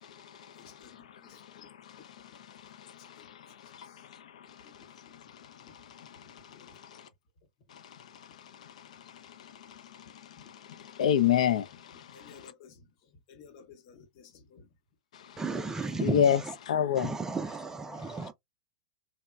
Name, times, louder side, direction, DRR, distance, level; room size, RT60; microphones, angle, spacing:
voice 1, 0.0-7.1 7.7-12.5 15.1-17.1 18.0-18.3, left 9 dB, 70° left, 0.4 m, -33 dB
voice 2, 0.5-1.7 2.5-2.6 2.8-3.6 3.8-4.1 4.6-4.7 5.1-5.2 5.7-5.8 6.5-7.1 10.1-10.2 11.9-14.7, left 6 dB, 55° left, 0.9 m, -56 dB
voice 3, 15.4-16.2 17.0-18.3, right 3 dB, 15° right, 0.4 m, -33 dB
2.9 x 2.1 x 2.2 m
hypercardioid pair, 100°, 4 cm